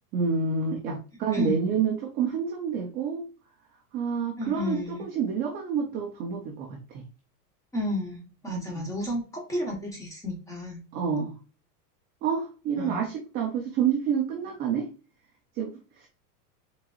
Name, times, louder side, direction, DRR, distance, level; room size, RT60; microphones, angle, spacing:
voice 1, 0.1-3.3 3.9-7.0 8.5-8.9 10.9-11.3 12.2-14.9 15.6-16.1, right 6 dB, 20° right, -1 dB, 0.5 m, -28 dB
voice 2, 4.4-5.0 7.7-10.8 12.8-13.0, left 1 dB, 5° left, 0 dB, 1.1 m, -32 dB
4.4 x 3.8 x 2.4 m, 0.34 s
supercardioid pair, 155°, 47 cm